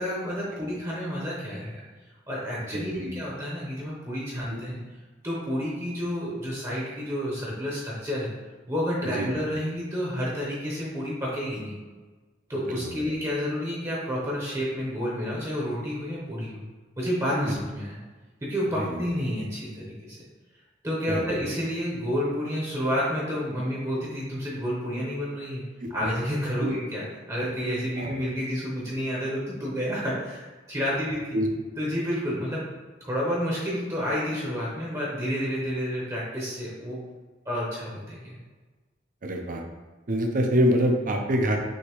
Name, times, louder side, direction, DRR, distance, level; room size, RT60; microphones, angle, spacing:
voice 1, 0.0-1.8 2.3-4.8 5.2-8.3 8.7-11.7 12.5-16.6 17.0-18.0 18.4-20.2 20.8-25.6 25.9-31.4 31.8-32.7 33.0-37.0 37.4-38.4, equal, 20° right, -5 dB, 0.8 m, -30 dB
voice 2, 2.7-3.2 4.5-4.6 9.1-9.3 12.5-13.0 17.4-17.6 18.8-19.0 21.1-21.4 25.8-25.9 26.6-26.7 28.0-28.1 31.3-31.5 39.2-39.6 40.1-41.6, equal, 45° right, 2 dB, 0.6 m, -26 dB
6.3 x 2.8 x 3.0 m, 1.3 s
head